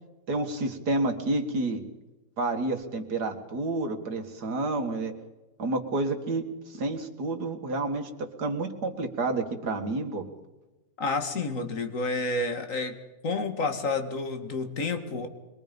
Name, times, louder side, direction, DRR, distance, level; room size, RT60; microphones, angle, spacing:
voice 1, 0.3-1.8 2.4-5.1 5.6-10.2, right 2 dB, 65° right, 5 dB, 2.5 m, -29 dB
voice 2, 11.0-13.0 13.2-15.3, left 3 dB, 50° left, 6 dB, 2.5 m, -29 dB
25.0 x 22.0 x 5.4 m, 1.1 s
omnidirectional pair, 1.9 m